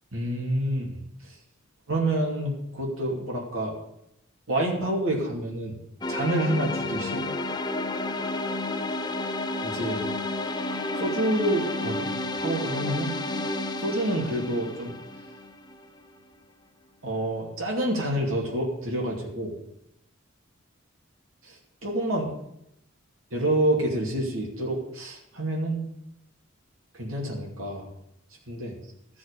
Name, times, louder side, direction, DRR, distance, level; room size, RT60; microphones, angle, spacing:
voice 1, 0.1-1.0 1.9-3.7 4.5-5.8 6.1-7.3 9.6-10.0 11.0-12.1 12.4-13.2 13.8-14.9 17.0-19.5 21.5-21.6 21.8-22.3 23.3-25.9 26.9-27.9 28.5-28.8, right 1 dB, 80° right, -2 dB, 2.6 m, -28 dB
sound 1, 6.0-16.0, left 2 dB, 20° left, 0.7 m, -31 dB
13.5 x 6.3 x 6.7 m, 0.80 s
head